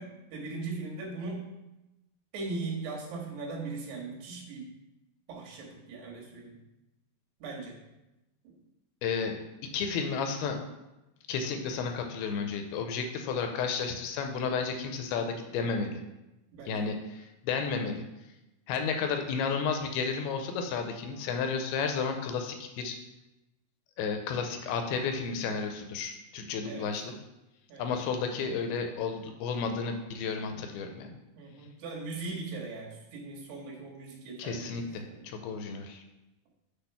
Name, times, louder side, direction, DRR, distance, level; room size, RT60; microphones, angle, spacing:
voice 1, 0.0-1.5 2.3-4.7 5.3-6.6 7.4-7.8 8.5-8.6 16.5-17.0 26.7-26.9 27.7-27.9 30.5-30.6 31.4-35.3, right 3 dB, 80° right, -2 dB, 3.6 m, -39 dB
voice 2, 9.0-9.4 9.7-10.6 11.3-16.0 16.7-18.0 18.7-23.0 24.0-27.1 27.8-31.1 34.4-36.0, left 5 dB, 80° left, 5 dB, 2.4 m, -32 dB
7.9 x 3.5 x 5.7 m, 0.97 s
omnidirectional pair, 4.7 m